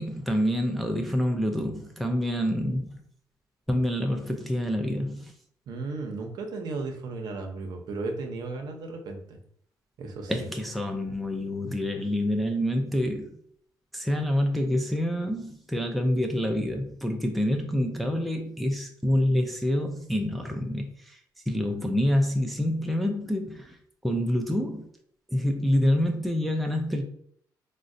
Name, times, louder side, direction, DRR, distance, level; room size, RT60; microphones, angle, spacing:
voice 1, 0.0-3.0 3.7-5.3 10.3-13.3 13.9-21.2 21.5-23.8 24.0-24.9 25.3-27.0, equal, ahead, 3 dB, 0.3 m, -27 dB
voice 2, 5.7-9.4 10.0-10.5, right 3 dB, 65° right, 3 dB, 0.6 m, -35 dB
3.7 x 2.1 x 2.5 m, 0.66 s
cardioid pair, 135°, 8 cm